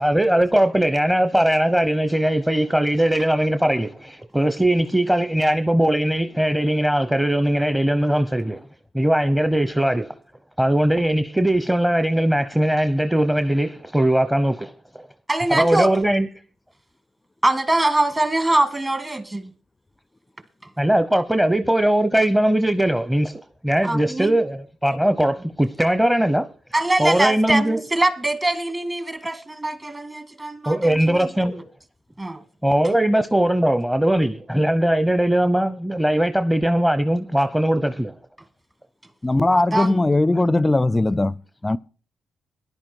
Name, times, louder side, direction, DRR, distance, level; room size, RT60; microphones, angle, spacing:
voice 1, 0.0-8.6 8.9-10.1 10.6-15.1 15.5-16.3 20.8-26.5 27.0-27.8 30.7-31.5 32.6-38.1, right 1 dB, 10° right, 0.9 m, -20 dB
voice 2, 15.3-15.9 17.4-19.5 23.8-24.3 26.7-31.6 32.2-32.4 39.5-40.0, right 2 dB, 30° right, 2.1 m, -23 dB
voice 3, 39.2-41.4 41.6-41.8, left 2 dB, 20° left, 0.5 m, -19 dB
13.5 x 10.5 x 4.6 m
hypercardioid pair, 45°, 0 cm